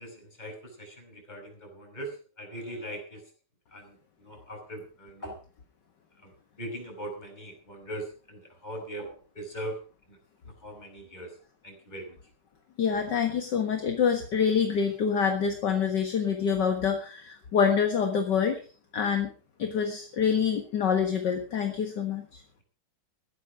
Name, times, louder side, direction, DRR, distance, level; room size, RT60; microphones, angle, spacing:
voice 1, 0.0-3.2 3.7-5.4 6.2-6.3 6.6-9.8 10.1-10.2 10.4-11.3 11.6-12.2, right 1 dB, 20° left, 1 dB, 5.8 m, -40 dB
voice 2, 12.8-18.6 18.9-19.3 19.6-22.4, left 7 dB, 55° left, 5 dB, 2.1 m, -26 dB
15.5 x 12.0 x 4.9 m, 0.37 s
omnidirectional pair, 2.4 m